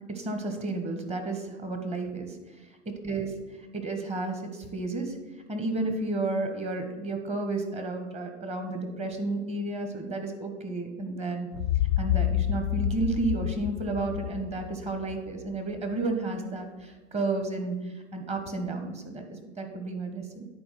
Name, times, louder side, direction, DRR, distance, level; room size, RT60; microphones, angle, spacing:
voice 1, 0.1-2.4 2.8-3.3 3.7-5.2 5.5-11.5 12.0-20.5, right 2 dB, 15° right, 4 dB, 1.4 m, -32 dB
sound 1, 11.5-15.4, left 12 dB, 50° left, 0.6 m, -29 dB
10.0 x 4.6 x 5.8 m, 1.2 s
hypercardioid pair, 105°, 38 cm